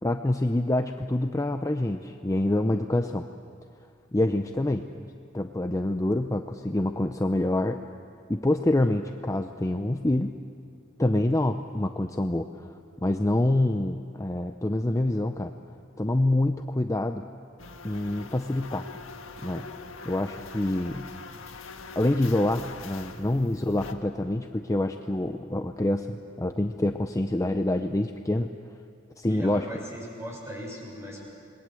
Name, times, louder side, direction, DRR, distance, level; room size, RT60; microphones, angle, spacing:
voice 1, 0.0-3.2 4.1-5.1 5.3-7.8 8.3-10.4 11.0-12.7 13.0-15.5 16.0-17.2 17.8-18.8 19.4-19.7 20.1-21.1 22.0-28.5 29.2-29.8, left 1 dB, 15° left, 6 dB, 0.6 m, -26 dB
sound 1, 17.6-23.9, left 4 dB, 85° left, 1.6 m, -43 dB
voice 2, 29.3-31.2, equal, 15° right, -2 dB, 6.7 m, -38 dB
27.5 x 21.0 x 7.7 m, 2.3 s
head